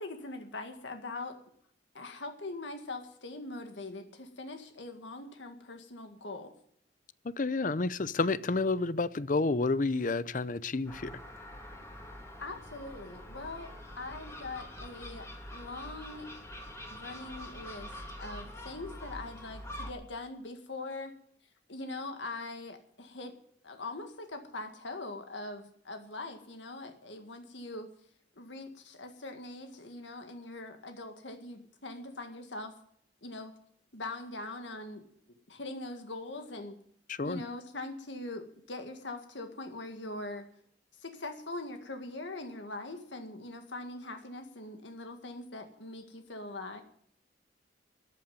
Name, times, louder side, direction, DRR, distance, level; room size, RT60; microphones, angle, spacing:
voice 1, 0.0-1.4 1.9-6.5 12.4-16.3 16.9-21.1 21.7-23.4 23.6-27.9 28.4-32.8 33.2-33.5 33.9-35.1 35.5-36.8 37.2-40.5 41.0-46.8, left 2 dB, 80° left, 6 dB, 1.9 m, -42 dB
voice 2, 7.2-11.2 37.1-37.4, left 3 dB, 45° left, 17 dB, 0.6 m, -30 dB
Gull seagull, 10.9-19.9, left 1 dB, 15° left, 2.4 m, -45 dB
14.0 x 8.8 x 9.3 m, 0.66 s
head